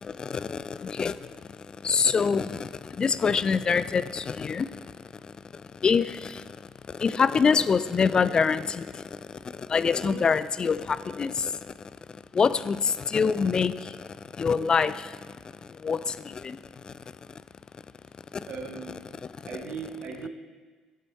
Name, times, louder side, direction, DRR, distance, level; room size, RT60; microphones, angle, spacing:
voice 1, 0.0-1.2 1.8-4.7 5.5-6.4 6.9-9.0 9.7-11.5 12.3-14.0 14.4-15.1 15.8-16.9, left 5 dB, 35° left, 14 dB, 0.4 m, -25 dB
voice 2, 18.5-19.0 19.5-20.3, right 5 dB, 55° right, 2 dB, 1.5 m, -37 dB
9.4 x 7.6 x 4.1 m, 1.4 s
figure-of-eight pair, 50°, 2 cm